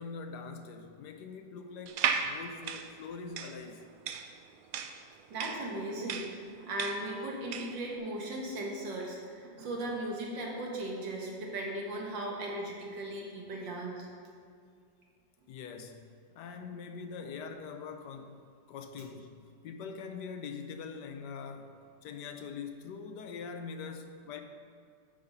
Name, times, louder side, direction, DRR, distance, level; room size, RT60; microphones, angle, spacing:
voice 1, 0.0-3.9 15.5-19.4 19.6-21.8 22.0-24.4, left 5 dB, 75° left, 6 dB, 1.2 m, -43 dB
sound 1, 1.9-7.8, right 7 dB, 70° right, 0.9 m, -35 dB
voice 2, 5.3-14.1, right 1 dB, 85° right, -1 dB, 2.1 m, -37 dB
8.7 x 5.5 x 5.5 m, 2.2 s
omnidirectional pair, 1.9 m